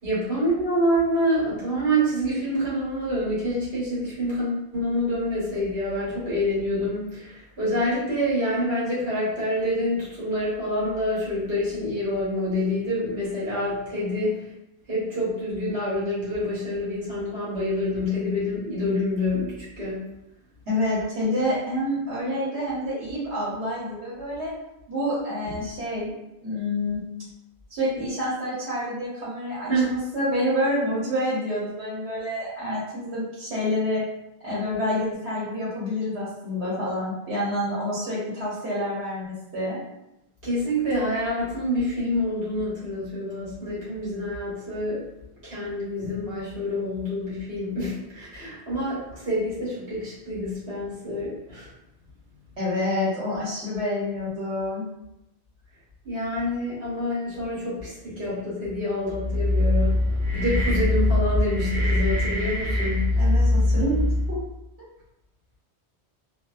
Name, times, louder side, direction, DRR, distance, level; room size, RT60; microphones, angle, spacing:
voice 1, 0.0-14.4 14.9-20.0 29.7-30.0 40.4-45.0 45.4-51.7 56.0-60.0 60.3-63.2, equal, 65° right, -9 dB, 1.4 m, -27 dB
voice 2, 20.7-24.5 24.9-26.1 26.4-27.0 27.7-34.0 34.4-39.8 52.6-54.8 63.2-64.4, left 1 dB, 90° right, -7 dB, 1.1 m, -28 dB
sound 1, 59.1-64.4, left 1 dB, 30° right, 1.1 m, -22 dB
2.6 x 2.2 x 2.3 m, 0.88 s
omnidirectional pair, 1.1 m